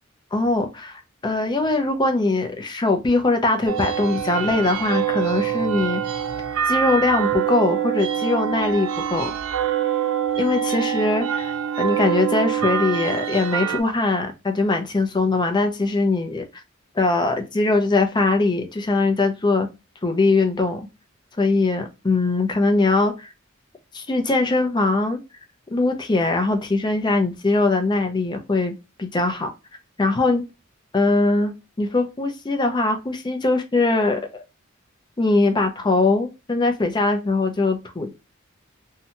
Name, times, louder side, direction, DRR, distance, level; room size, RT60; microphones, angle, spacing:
voice 1, 0.3-6.0 6.7-9.3 10.4-11.5 11.8-16.4 17.0-19.7 20.0-20.8 21.4-23.3 23.9-25.2 25.7-28.7 29.0-29.5 30.0-30.4 30.9-34.4 35.2-38.1, left 3 dB, 20° left, 0.5 m, -21 dB
sound 1, 3.7-13.8, right 9 dB, 75° right, 0.3 m, -25 dB
2.7 x 2.2 x 2.8 m
head